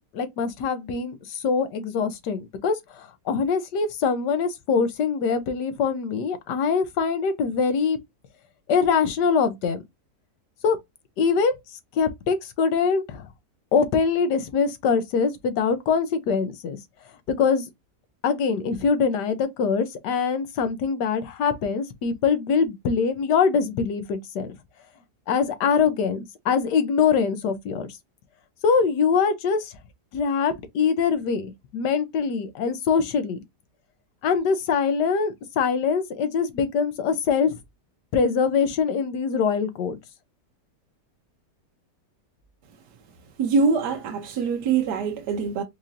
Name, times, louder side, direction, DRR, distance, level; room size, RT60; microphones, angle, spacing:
voice 1, 0.1-8.0 8.7-9.8 10.6-10.8 11.2-11.5 11.9-13.3 13.7-16.8 17.3-17.7 18.2-24.5 25.3-27.9 28.6-29.7 30.1-33.4 34.2-37.6 38.1-40.0, left 5 dB, 85° left, 1.4 m, -23 dB
voice 2, 43.4-45.6, right 5 dB, 75° right, 1.2 m, -23 dB
4.7 x 2.5 x 2.6 m
omnidirectional pair, 1.8 m